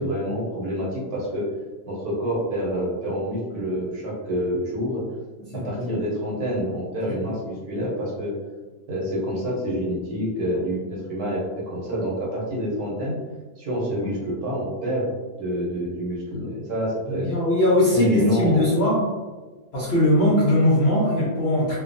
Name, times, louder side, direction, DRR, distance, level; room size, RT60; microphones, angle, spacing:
voice 1, 0.0-1.5 1.9-5.0 5.5-8.3 8.9-13.2 13.6-15.1 15.4-17.3 17.9-18.6, equal, 65° right, -5 dB, 1.2 m, -27 dB
voice 2, 5.5-6.0 6.3-6.4 17.1-19.0 19.7-21.7, left 1 dB, 65° left, -8 dB, 0.6 m, -20 dB
2.7 x 2.3 x 2.5 m, 1.3 s
omnidirectional pair, 1.9 m